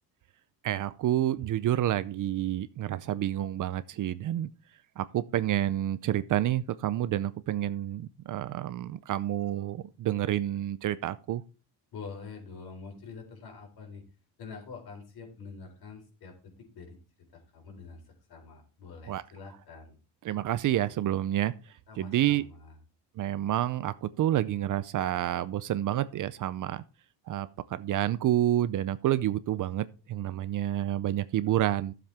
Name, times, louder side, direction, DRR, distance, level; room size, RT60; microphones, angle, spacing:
voice 1, 0.6-4.5 5.0-11.4 19.1-19.2 20.2-22.4 23.2-26.8 27.3-31.9, right 12 dB, 45° right, 0.5 m, -29 dB
voice 2, 11.9-14.0 14.4-17.0 17.3-20.0 21.9-22.7, left 5 dB, 60° left, 4.2 m, -46 dB
13.0 x 7.5 x 3.5 m
cardioid pair, 135°, 43 cm